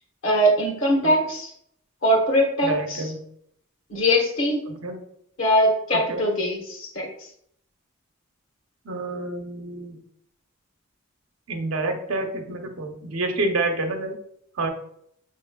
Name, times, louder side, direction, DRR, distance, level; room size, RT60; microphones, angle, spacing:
voice 1, 0.2-1.5 2.0-3.1 3.9-4.6 5.4-7.1, equal, 70° left, -1 dB, 1.2 m, -21 dB
voice 2, 2.6-3.2 4.7-5.0 5.9-6.2 8.8-10.0 11.5-14.2 14.6-14.7, right 2 dB, 90° right, 4 dB, 0.8 m, -28 dB
5.5 x 3.1 x 2.3 m, 0.69 s
head